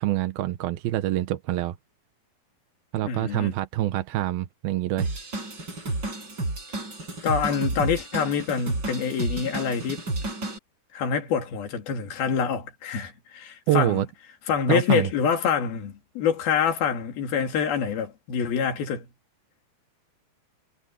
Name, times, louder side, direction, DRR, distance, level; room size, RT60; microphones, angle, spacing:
voice 1, 0.0-1.8 2.9-5.1 13.7-14.1 14.7-15.1, right 14 dB, 75° right, 2.7 m, -26 dB
voice 2, 3.0-3.5 7.2-10.1 10.9-14.0 14.5-19.1, left 7 dB, 65° left, 4.4 m, -26 dB
Drum kit / Drum, 5.0-10.6, right 2 dB, 25° right, 6.6 m, -31 dB
omnidirectional pair, 4.6 m